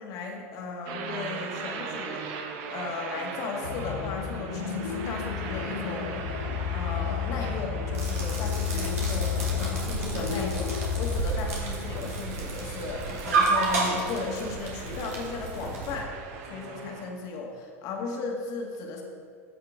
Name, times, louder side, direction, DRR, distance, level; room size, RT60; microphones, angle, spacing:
voice 1, 0.0-2.4 2.7-16.1 16.5-19.0, left 4 dB, 50° left, 1 dB, 1.8 m, -36 dB
sound 1, 0.9-17.1, right 5 dB, 55° right, 1.0 m, -41 dB
sound 2, 3.6-11.2, left 7 dB, 70° left, 1.1 m, -31 dB
sound 3, 7.9-16.0, right 3 dB, 75° right, 2.5 m, -31 dB
14.5 x 5.7 x 3.7 m, 2.2 s
figure-of-eight pair, 80°, 8 cm